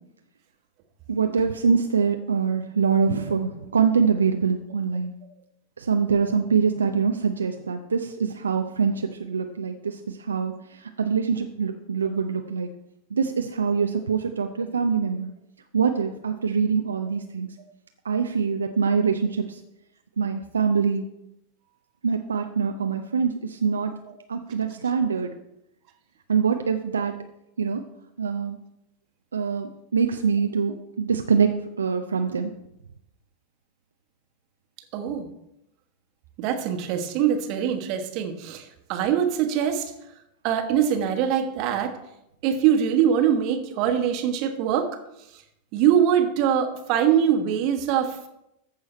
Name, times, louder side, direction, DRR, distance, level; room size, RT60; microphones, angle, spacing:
voice 1, 1.1-5.1 5.8-12.7 13.1-15.3 15.7-17.5 18.0-19.6 20.2-21.0 22.0-23.9 24.3-25.3 26.3-27.2 27.6-27.8 28.2-28.6 29.3-32.5, right 6 dB, 70° right, 5 dB, 0.5 m, -24 dB
voice 2, 34.9-35.3 36.4-39.9 40.4-41.9 42.4-44.9 45.7-48.3, right 9 dB, 40° right, 6 dB, 1.2 m, -23 dB
14.5 x 4.8 x 4.3 m, 0.84 s
figure-of-eight pair, 90°, 0 cm